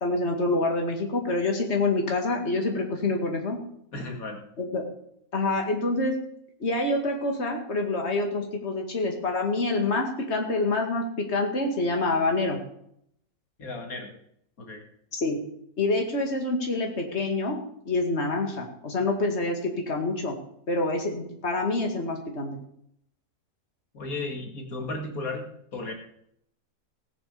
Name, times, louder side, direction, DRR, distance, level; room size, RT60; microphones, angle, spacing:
voice 1, 0.0-3.6 4.6-4.8 5.3-6.2 6.6-12.6 15.1-15.4 15.8-17.6 17.9-20.4 20.7-22.6, left 2 dB, 50° left, 2 dB, 2.5 m, -26 dB
voice 2, 3.9-4.4 13.6-14.1 14.6-14.8 23.9-25.9, left 2 dB, 90° left, 2 dB, 2.7 m, -34 dB
18.5 x 6.9 x 6.9 m, 0.70 s
omnidirectional pair, 1.5 m